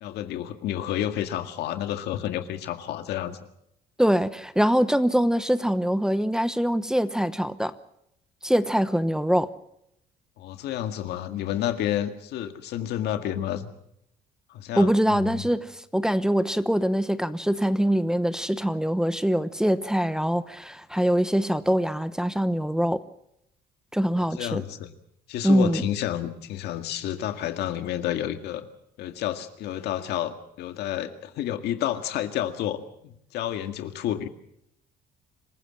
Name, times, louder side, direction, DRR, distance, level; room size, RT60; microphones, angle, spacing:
voice 1, 0.0-3.4 10.4-13.7 14.5-15.4 24.1-24.9 25.3-28.7 29.0-34.3, left 11 dB, 80° left, 2.0 m, -30 dB
voice 2, 4.0-7.7 8.4-9.5 14.8-23.0 23.9-24.6 25.4-25.9, equal, 5° right, 1.0 m, -23 dB
26.5 x 15.5 x 7.5 m
cardioid pair, 110°, 17 cm